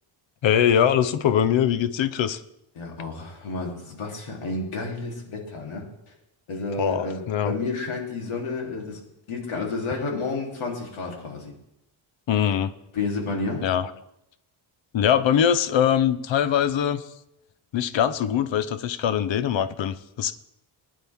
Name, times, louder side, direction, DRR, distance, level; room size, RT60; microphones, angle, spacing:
voice 1, 0.4-2.4 6.8-7.5 12.3-12.7 13.6-13.9 14.9-17.0 17.7-20.3, left 9 dB, 70° left, 13 dB, 0.9 m, -22 dB
voice 2, 2.8-5.9 6.5-9.0 9.3-11.5 12.9-13.6, left 3 dB, 85° left, -1 dB, 3.5 m, -31 dB
21.0 x 9.9 x 3.6 m, 0.81 s
wide cardioid pair, 155°, 47 cm